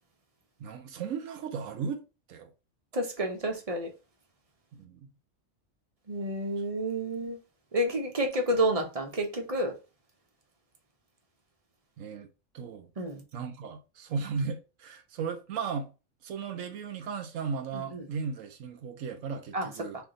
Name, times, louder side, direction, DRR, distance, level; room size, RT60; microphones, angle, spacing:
voice 1, 0.6-2.5 4.7-5.1 6.6-6.7 12.0-12.3 12.5-12.9 13.3-15.9 16.2-20.0, right 5 dB, 80° right, 1.0 m, -36 dB
voice 2, 2.9-3.9 6.1-7.4 7.7-9.7 13.0-13.2 17.9-18.1 19.5-19.7, right 1 dB, 35° right, 0.7 m, -29 dB
3.4 x 2.6 x 3.7 m
omnidirectional pair, 1.3 m